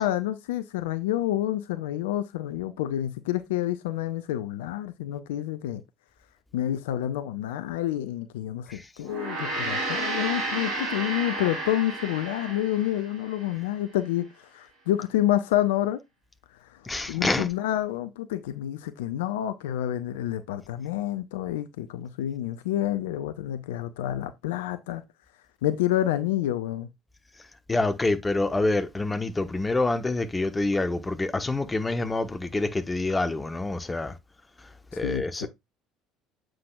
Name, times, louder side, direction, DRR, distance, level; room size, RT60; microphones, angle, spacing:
voice 1, 0.0-5.8 6.5-14.3 14.5-16.0 17.1-25.0 25.6-26.9 34.9-35.5, left 13 dB, 65° left, 0.5 m, -28 dB
Gong, 9.0-13.6, right 2 dB, 60° right, 4.2 m, -32 dB
voice 2, 16.9-17.5 27.7-34.1 35.0-35.5, left 2 dB, 15° left, 1.0 m, -26 dB
7.6 x 6.2 x 2.3 m
figure-of-eight pair, 60°, 0 cm